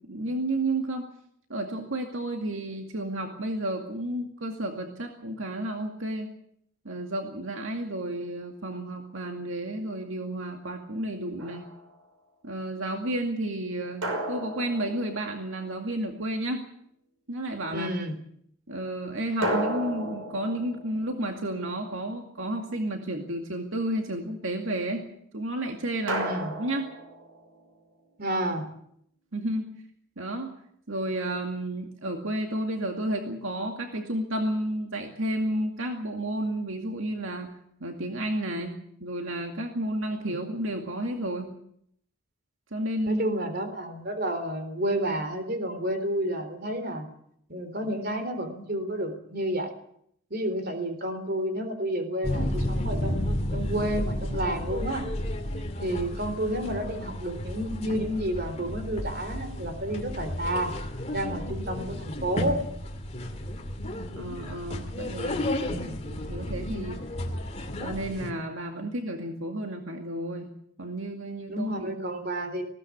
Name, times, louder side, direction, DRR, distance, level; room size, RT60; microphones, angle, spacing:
voice 1, 0.1-1.1 1.5-6.3 6.8-11.7 12.4-16.6 17.3-17.9 18.7-25.1 25.3-26.9 29.3-29.6 30.2-30.5 30.9-37.5 37.8-41.5 42.7-43.2 64.2-67.0 67.8-70.5 70.8-71.9, right 1 dB, 70° right, 3 dB, 2.3 m, -32 dB
sound 1, 11.4-12.0 14.0-15.8 19.4-22.0 26.1-27.7, right 1 dB, 85° right, 5.6 m, -34 dB
voice 2, 17.7-18.1 26.2-26.5 28.2-28.6 40.3-40.4 43.1-47.1 47.5-49.7 50.3-55.0 55.8-60.7 61.1-62.6 65.7-66.0 71.5-72.6, right 1 dB, 45° right, 8 dB, 3.7 m, -30 dB
sound 2, 52.2-68.3, left 1 dB, 30° left, 2.5 m, -32 dB
20.5 x 17.0 x 8.6 m, 0.69 s
head